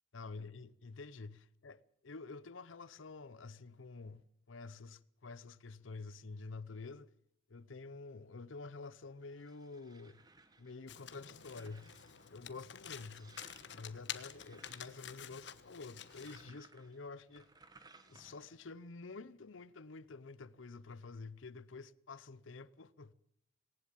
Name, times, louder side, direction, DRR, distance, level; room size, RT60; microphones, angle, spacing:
voice 1, 0.1-7.1 7.5-10.2 10.6-11.9 12.3-13.4 13.7-17.5 18.1-23.1, left 3 dB, 85° left, 0.7 m, -49 dB
sound 1, 9.0-18.6, right 3 dB, 20° right, 1.4 m, -64 dB
Domestic sounds home sounds, 10.9-16.5, left 9 dB, 65° left, 1.3 m, -49 dB
19.0 x 18.5 x 7.4 m
head